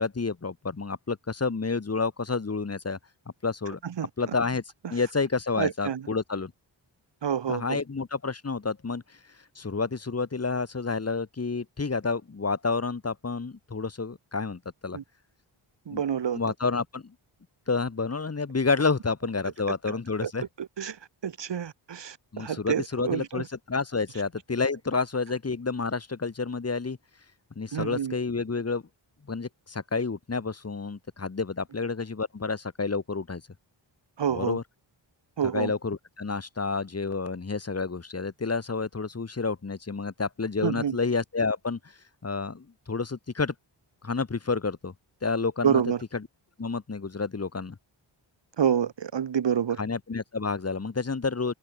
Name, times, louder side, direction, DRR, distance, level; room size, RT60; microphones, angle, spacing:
voice 1, 0.0-3.0 3.4-3.8 4.2-4.6 4.9-6.5 7.5-9.0 9.6-15.0 15.9-16.0 16.3-17.1 17.7-20.4 22.3-27.0 27.6-28.8 29.3-33.4 34.3-34.6 35.5-41.8 42.2-43.5 44.0-44.9 45.2-45.8 46.1-46.2 46.6-47.8 49.8-51.5, left 4 dB, 30° left, 3.5 m, -29 dB
voice 2, 3.8-4.4 5.6-6.1 7.2-7.8 14.9-15.0 15.9-16.4 19.9-20.0 20.2-20.3 20.6-23.5 27.7-28.2 34.2-34.6 35.4-35.7 40.6-41.0 45.6-46.0 48.6-49.8, right 8 dB, 60° right, 1.9 m, -28 dB
wide cardioid pair, 160°, 47 cm